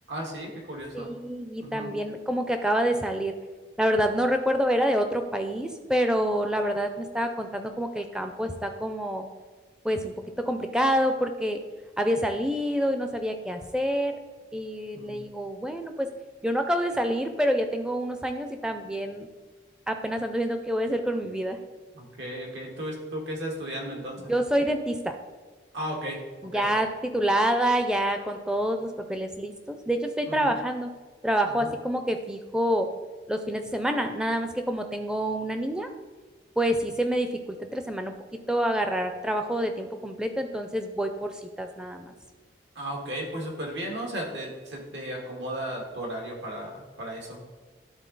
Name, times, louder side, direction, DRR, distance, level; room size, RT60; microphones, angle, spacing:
voice 1, 0.1-1.1 1.6-1.9 14.9-15.2 21.9-24.3 25.7-26.2 26.5-26.7 30.3-30.5 31.5-31.7 42.7-47.4, right 1 dB, 75° right, 0 dB, 1.7 m, -35 dB
voice 2, 0.9-3.3 3.8-9.3 9.8-11.6 12.0-14.2 14.5-16.1 16.4-19.3 19.9-21.6 24.3-25.2 26.4-30.9 31.2-32.9 33.3-35.9 36.6-38.1 38.5-42.1, equal, 5° right, 6 dB, 0.4 m, -27 dB
11.5 x 3.9 x 3.9 m, 1.4 s
head